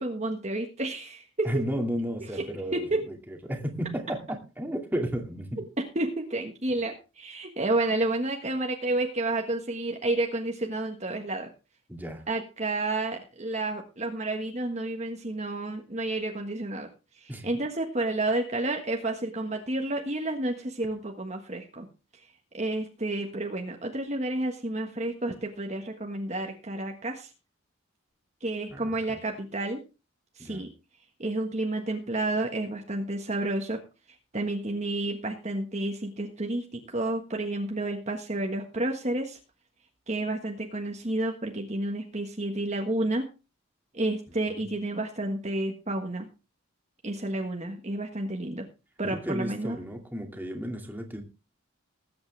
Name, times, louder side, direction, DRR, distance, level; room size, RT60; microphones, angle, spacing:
voice 1, 0.0-1.6 2.4-2.5 2.7-3.0 5.9-11.5 12.3-16.9 17.2-21.8 22.5-27.3 28.4-29.8 30.4-30.7 31.2-33.8 34.3-39.4 40.1-43.3 43.9-46.3 47.0-48.6 49.0-49.8, right 2 dB, 35° right, 2 dB, 1.5 m, -30 dB
voice 2, 1.4-5.6 11.9-12.2 17.3-17.5 28.7-29.2 30.4-30.7 49.0-51.2, equal, 10° right, 2 dB, 2.3 m, -33 dB
20.0 x 8.7 x 3.4 m, 0.31 s
head